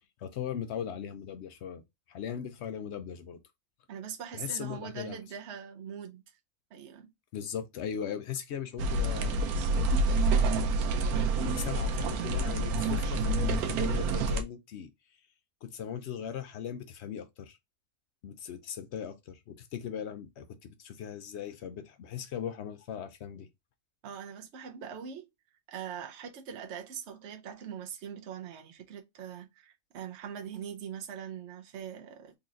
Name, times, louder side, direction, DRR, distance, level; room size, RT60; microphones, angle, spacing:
voice 1, 0.2-1.8 2.1-3.4 4.3-5.2 7.3-9.4 11.3-14.9 15.7-17.6 18.2-23.5, left 8 dB, 65° left, 0.7 m, -39 dB
voice 2, 3.9-6.2 6.7-7.1 24.0-25.3 25.7-32.3, right 8 dB, 55° right, 0.9 m, -42 dB
sound 1, 8.8-14.4, right 2 dB, 90° right, 1.1 m, -27 dB
3.9 x 2.9 x 2.5 m
omnidirectional pair, 1.5 m